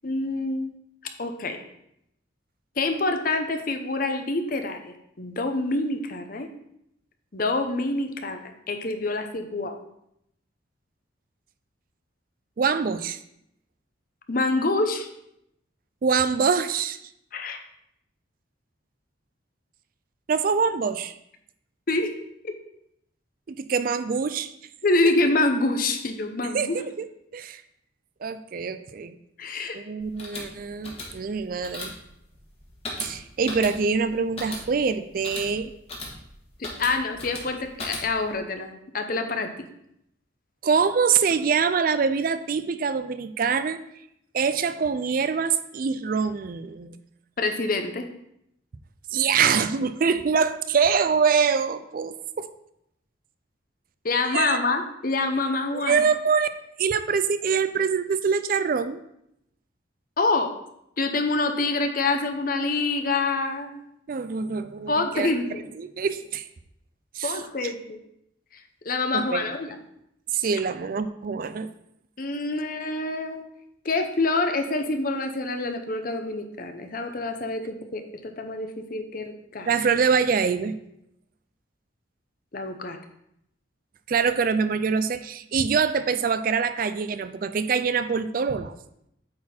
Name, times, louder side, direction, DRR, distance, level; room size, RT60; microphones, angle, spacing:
voice 1, 0.0-0.7 1.2-1.6 2.8-6.5 7.3-8.4 8.7-9.7 14.3-15.1 17.3-17.6 21.9-22.1 22.4-22.5 24.8-26.8 29.4-29.8 36.6-39.5 47.4-48.0 54.0-56.0 60.2-60.5 61.0-63.8 64.9-65.6 67.2-68.0 68.8-69.7 72.2-73.4 73.8-79.7 82.5-83.0, left 3 dB, 45° left, 6 dB, 0.7 m, -26 dB
voice 2, 12.6-13.2 16.0-17.0 20.3-21.1 23.5-24.5 26.5-27.1 27.3-27.6 28.2-29.2 29.7-31.9 33.0-35.7 40.6-43.8 44.3-47.0 49.1-52.5 54.3-54.6 55.7-56.5 56.8-59.0 64.1-65.3 65.8-66.5 67.1-67.7 69.1-69.4 70.3-71.7 79.7-80.8 84.1-88.8, right 6 dB, 45° right, 12 dB, 0.4 m, -24 dB
sound 1, 30.0-38.4, left 2 dB, 30° left, 1.5 m, -38 dB
8.6 x 4.2 x 4.3 m, 0.77 s
head